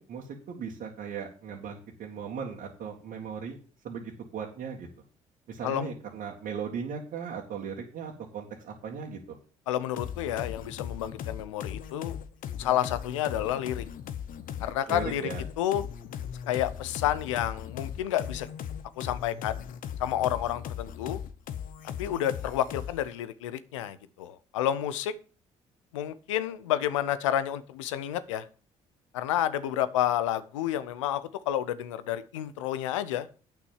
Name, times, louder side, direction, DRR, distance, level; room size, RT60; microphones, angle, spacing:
voice 1, 0.0-3.6 3.8-4.9 5.5-9.4 14.9-15.4, right 6 dB, 65° right, 2.1 m, -37 dB
voice 2, 9.7-12.2 12.6-13.8 14.6-15.2 15.6-15.8 16.5-18.5 19.0-19.6 20.0-21.2 22.0-25.1 25.9-28.4 29.1-33.3, left 11 dB, 90° left, 0.7 m, -30 dB
sound 1, 10.0-23.1, left 9 dB, 60° left, 1.0 m, -38 dB
8.7 x 6.1 x 7.3 m
hypercardioid pair, 55°, 16 cm